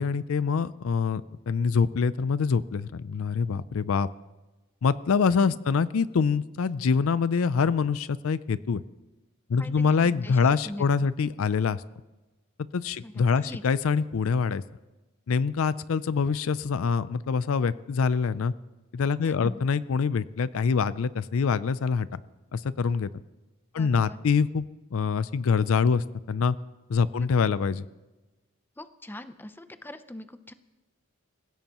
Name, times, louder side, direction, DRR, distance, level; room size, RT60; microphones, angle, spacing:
voice 1, 0.0-4.1 4.8-8.8 9.5-11.8 12.7-14.6 15.3-18.5 18.9-22.2 22.5-23.1 23.7-24.7 24.9-26.6 26.9-27.8, left 5 dB, 65° left, 16 dB, 0.4 m, -25 dB
voice 2, 5.5-5.8 9.6-10.4 10.6-10.9 13.0-13.6 19.2-19.6 23.7-24.2 27.1-27.3 28.8-30.5, left 1 dB, 10° left, 11 dB, 0.6 m, -42 dB
27.0 x 16.0 x 3.0 m, 1.1 s
head